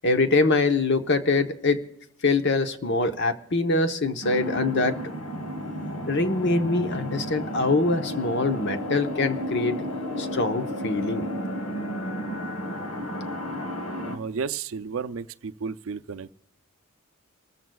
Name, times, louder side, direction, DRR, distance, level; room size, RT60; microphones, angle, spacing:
voice 1, 0.0-1.8 2.2-5.0 6.1-9.8 10.2-11.3, left 3 dB, 55° left, 1.0 m, -24 dB
sound 1, 4.2-14.2, equal, 85° left, 1.6 m, -32 dB
voice 2, 14.0-16.3, right 5 dB, 70° right, 0.5 m, -33 dB
27.0 x 14.0 x 2.3 m
head